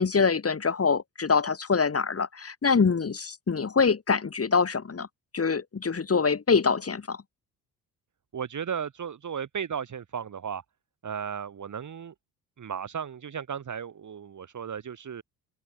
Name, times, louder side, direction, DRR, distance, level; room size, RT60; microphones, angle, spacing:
voice 1, 0.0-5.1 5.3-7.2, left 5 dB, 30° left, 3.7 m, -25 dB
voice 2, 8.3-10.6 11.0-12.1 12.6-15.2, right 7 dB, 40° right, 2.4 m, -35 dB
open air
figure-of-eight pair, 50°, 47 cm